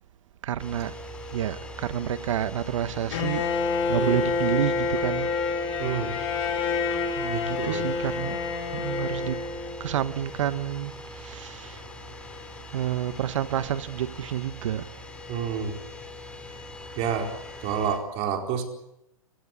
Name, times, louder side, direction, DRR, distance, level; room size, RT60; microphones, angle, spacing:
voice 1, 0.4-0.9 1.3-3.4 3.9-5.3 7.1-8.4 8.7-9.4 9.8-11.8 12.7-14.9, right 11 dB, 60° right, 1.1 m, -29 dB
sound 1, 0.6-18.0, left 1 dB, 5° left, 3.2 m, -41 dB
Bowed string instrument, 3.1-10.0, left 4 dB, 50° left, 6.3 m, -28 dB
voice 2, 5.8-6.2 7.3-7.8 15.3-15.7 17.0-17.3 17.6-18.6, right 7 dB, 35° right, 4.5 m, -29 dB
28.5 x 17.5 x 8.4 m
hypercardioid pair, 145°, 18 cm